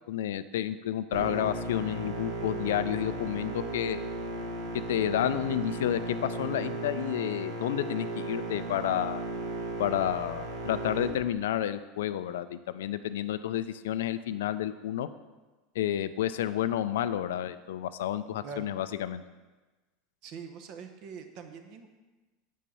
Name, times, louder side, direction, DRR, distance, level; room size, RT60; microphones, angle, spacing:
voice 1, 0.1-4.0 4.7-9.2 9.8-15.1 15.8-19.2, left 11 dB, 90° left, 13 dB, 0.4 m, -30 dB
sound 1, 1.1-11.1, right 2 dB, 75° right, 1.4 m, -36 dB
voice 2, 20.2-21.9, right 5 dB, 60° right, 7 dB, 1.0 m, -43 dB
7.4 x 5.4 x 5.6 m, 1.2 s
supercardioid pair, 120°, 0 cm